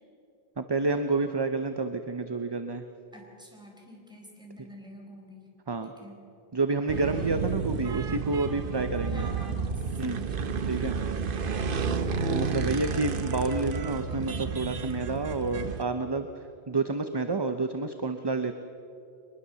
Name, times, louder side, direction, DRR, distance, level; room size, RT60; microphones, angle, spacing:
voice 1, 0.6-2.8 5.7-5.9 6.5-9.3 10.0-10.2 10.7-10.9 12.3-18.5, right 3 dB, 25° right, 8 dB, 0.7 m, -29 dB
voice 2, 3.1-5.4 5.8-6.2 9.1-11.5 11.8-12.1, equal, 5° right, -1 dB, 4.3 m, -48 dB
sound 1, 6.9-15.8, right 5 dB, 60° right, 1.1 m, -31 dB
22.5 x 21.0 x 7.0 m, 2.8 s
omnidirectional pair, 1.0 m